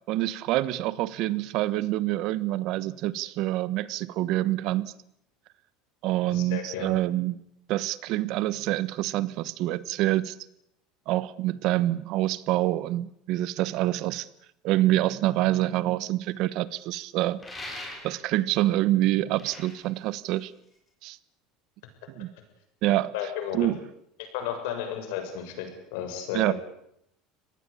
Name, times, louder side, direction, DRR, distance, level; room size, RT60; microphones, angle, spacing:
voice 1, 0.1-4.9 6.0-7.4 7.7-10.3 11.1-14.3 14.6-17.4 18.0-20.5 21.0-21.2 22.2-22.3 22.8-23.1 23.5-23.8 26.3-26.5, right 15 dB, 55° right, 18 dB, 1.1 m, -26 dB
voice 2, 6.3-7.0 23.1-23.7 24.3-26.5, left 9 dB, 75° left, 6 dB, 7.2 m, -33 dB
sound 1, 17.4-18.4 19.2-20.9, left 1 dB, 15° left, 7.3 m, -41 dB
25.5 x 19.0 x 8.6 m, 0.75 s
cardioid pair, 145°, 0 cm